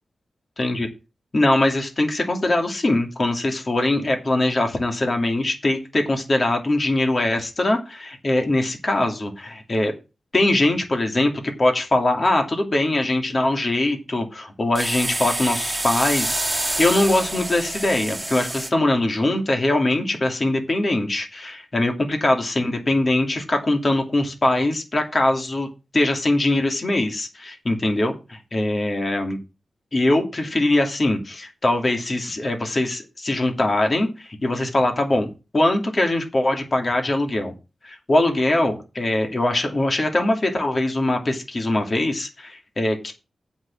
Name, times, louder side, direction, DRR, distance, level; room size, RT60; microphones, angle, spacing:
voice 1, 1.3-9.9 10.3-11.3 11.6-25.7 25.9-29.4 29.9-37.5 37.8-43.1, left 1 dB, 40° left, 3 dB, 2.6 m, -22 dB
sound 1, 14.7-18.7, right 1 dB, 15° right, 2.1 m, -27 dB
7.8 x 6.4 x 7.1 m, 0.28 s
wide cardioid pair, 85°, 0 cm